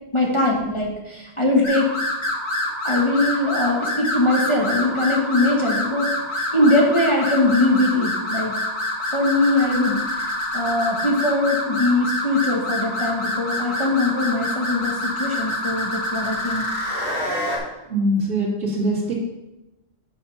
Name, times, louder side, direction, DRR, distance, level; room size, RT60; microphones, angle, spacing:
voice 1, 0.1-1.9 2.8-8.5 9.1-10.0 10.5-16.6, left 2 dB, 30° left, -2 dB, 1.0 m, -21 dB
sound 1, 1.6-17.6, left 1 dB, 70° left, 2.2 m, -26 dB
voice 2, 17.9-19.1, right 1 dB, 80° right, -7 dB, 2.2 m, -22 dB
5.8 x 5.6 x 5.6 m, 1.0 s
omnidirectional pair, 1.1 m